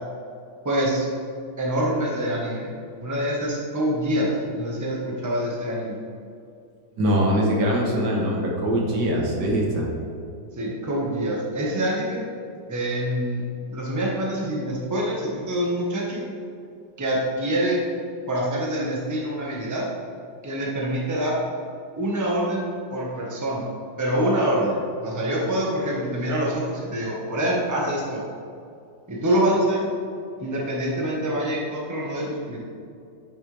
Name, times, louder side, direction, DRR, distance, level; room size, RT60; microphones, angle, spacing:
voice 1, 0.6-1.1 1.6-2.7 3.0-6.0 10.5-12.2 12.7-13.4 13.7-16.2 17.0-17.8 18.3-19.9 20.4-21.4 22.0-23.6 24.0-28.2 29.1-29.8 30.4-32.6, right 1 dB, 10° right, -4 dB, 1.2 m, -25 dB
voice 2, 7.0-9.9, equal, 70° right, -1 dB, 1.8 m, -22 dB
10.0 x 6.7 x 3.4 m, 2.4 s
omnidirectional pair, 1.9 m